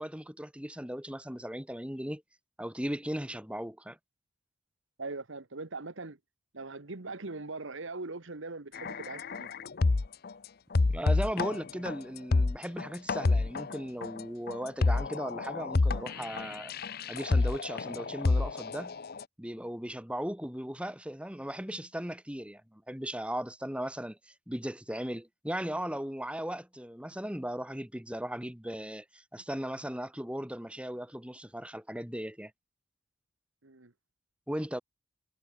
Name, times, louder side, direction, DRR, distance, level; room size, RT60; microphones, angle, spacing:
voice 1, 0.0-2.2 2.6-4.0 10.9-16.7 17.1-19.0 19.4-24.2 24.5-32.5 34.5-34.8, equal, 5° right, 2.4 m, -37 dB
voice 2, 5.0-6.2 6.5-9.5 33.6-33.9, right 3 dB, 65° right, 1.4 m, -41 dB
sound 1, 8.7-10.3 10.7-19.2, left 3 dB, 45° left, 0.6 m, -29 dB
head